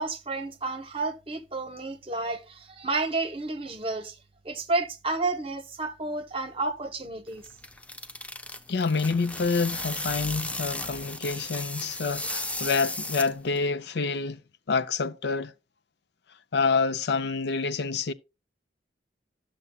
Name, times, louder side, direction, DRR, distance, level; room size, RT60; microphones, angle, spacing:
voice 1, 0.0-4.2 4.4-7.5, right 3 dB, 30° right, 1.1 m, -31 dB
sound 1, 7.3-13.6, left 2 dB, 10° left, 0.5 m, -35 dB
voice 2, 8.7-14.4 14.7-15.5 16.5-18.1, left 4 dB, 65° left, 0.5 m, -27 dB
12.0 x 7.0 x 2.3 m
head